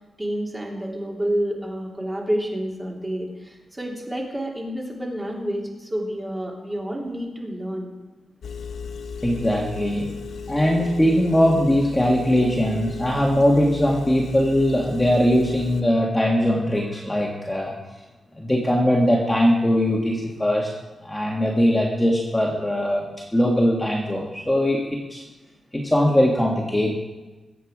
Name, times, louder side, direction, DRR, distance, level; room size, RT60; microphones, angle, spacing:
voice 1, 0.2-7.9, equal, 15° right, -2 dB, 2.9 m, -29 dB
Engine, 8.4-15.8, left 5 dB, 80° left, 1.0 m, -36 dB
voice 2, 9.2-10.1 10.5-17.7 18.4-20.7 21.0-25.2 25.7-26.9, equal, 10° left, -2 dB, 1.7 m, -20 dB
22.0 x 8.3 x 4.9 m, 1.2 s
wide cardioid pair, 135°, 0 cm